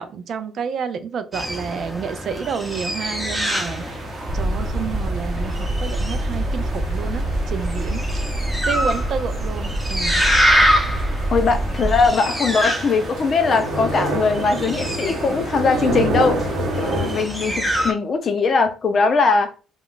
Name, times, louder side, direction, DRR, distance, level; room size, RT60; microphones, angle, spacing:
voice 1, 0.0-3.8 4.3-8.1 8.7-10.2 15.6-16.1, right 6 dB, 60° right, 0.4 m, -29 dB
sound 1, 1.3-17.9, equal, 5° right, 0.8 m, -26 dB
sound 2, 3.6-17.2, right 2 dB, 85° right, 1.0 m, -30 dB
sound 3, 4.2-12.1, right 1 dB, 45° right, 0.8 m, -25 dB
voice 2, 11.3-16.4 16.8-19.5, left 4 dB, 50° left, 0.6 m, -20 dB
2.3 x 2.0 x 3.8 m
supercardioid pair, 65°, 0 cm